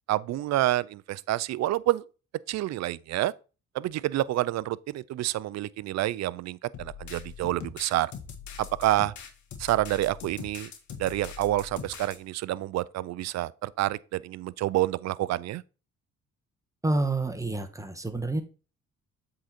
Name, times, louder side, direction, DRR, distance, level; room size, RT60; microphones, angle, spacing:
voice 1, 0.1-2.0 2.5-3.3 3.7-8.1 8.6-9.1 9.6-10.7 11.0-15.6, right 15 dB, 60° right, 0.4 m, -28 dB
sound 1, 6.7-12.2, left 7 dB, 70° left, 1.5 m, -42 dB
voice 2, 16.8-18.4, right 2 dB, 10° right, 1.1 m, -28 dB
7.7 x 3.9 x 4.3 m
cardioid pair, 90°, 30 cm